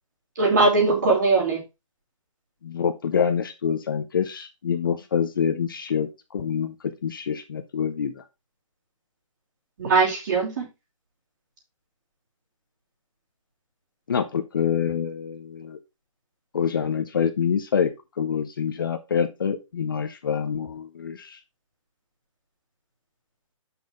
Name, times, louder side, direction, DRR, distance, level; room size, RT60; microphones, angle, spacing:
voice 1, 0.4-1.6 9.8-10.7, right 3 dB, 35° right, -2 dB, 2.9 m, -20 dB
voice 2, 2.6-6.7 7.0-8.2 14.1-15.8 16.5-17.9 18.2-21.4, left 7 dB, 40° left, 8 dB, 0.7 m, -26 dB
7.2 x 5.8 x 3.6 m, 0.25 s
hypercardioid pair, 175°, 17 cm